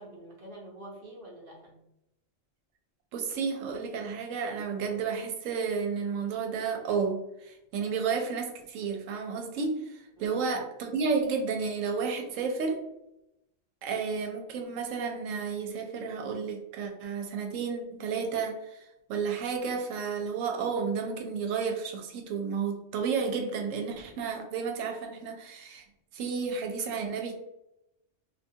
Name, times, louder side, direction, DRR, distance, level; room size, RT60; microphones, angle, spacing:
voice 1, 0.0-1.8 10.2-10.4, right 1 dB, 55° right, -2 dB, 0.8 m, -47 dB
voice 2, 3.1-12.8 13.8-25.8 26.1-27.4, right 5 dB, 85° right, 3 dB, 1.0 m, -32 dB
2.4 x 2.2 x 2.7 m, 0.86 s
omnidirectional pair, 1.3 m